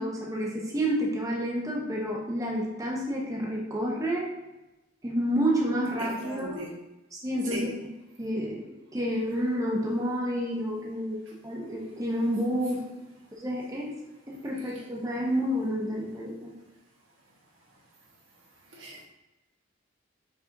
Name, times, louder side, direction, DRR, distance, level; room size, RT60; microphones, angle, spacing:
voice 1, 0.0-4.3 5.0-6.6 7.1-7.7 8.2-8.6 8.9-11.2 11.4-12.8 13.4-14.0 14.3-16.5, equal, 15° right, -3 dB, 0.7 m, -29 dB
voice 2, 6.0-6.7 7.5-7.7 18.7-19.0, equal, 80° right, -2 dB, 1.2 m, -37 dB
4.9 x 4.2 x 2.6 m, 1.0 s
head